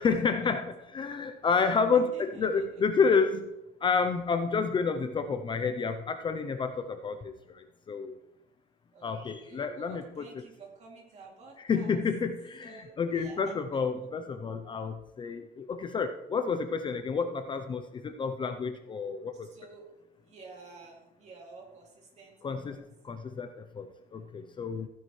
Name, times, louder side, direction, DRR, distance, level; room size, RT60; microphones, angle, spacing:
voice 1, 0.0-3.5 3.8-8.1 9.0-10.4 11.6-19.5 22.4-24.9, left 5 dB, 25° left, 8 dB, 0.5 m, -30 dB
voice 2, 1.5-2.6 8.9-12.0 12.6-13.8 19.3-22.8, right 3 dB, 40° right, -1 dB, 2.6 m, -51 dB
15.0 x 10.0 x 3.2 m, 0.92 s
cardioid pair, 165°, 18 cm